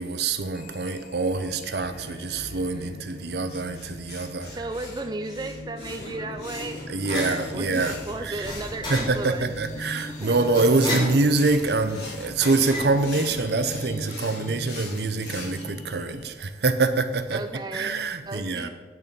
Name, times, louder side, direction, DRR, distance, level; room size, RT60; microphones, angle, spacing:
voice 1, 0.0-4.6 6.9-8.5 8.9-18.7, right 3 dB, 65° right, 0.7 m, -25 dB
sound 1, 0.5-16.3, left 1 dB, 45° left, 0.7 m, -41 dB
sound 2, 3.5-9.3 10.1-15.6, left 3 dB, 70° left, 2.5 m, -42 dB
voice 2, 4.5-6.9 7.1-9.5 10.2-10.3 17.3-18.0 18.3-18.7, right 2 dB, 25° right, 0.4 m, -34 dB
sound 3, 5.5-13.8, left 1 dB, 25° left, 2.8 m, -36 dB
9.1 x 6.3 x 5.3 m
head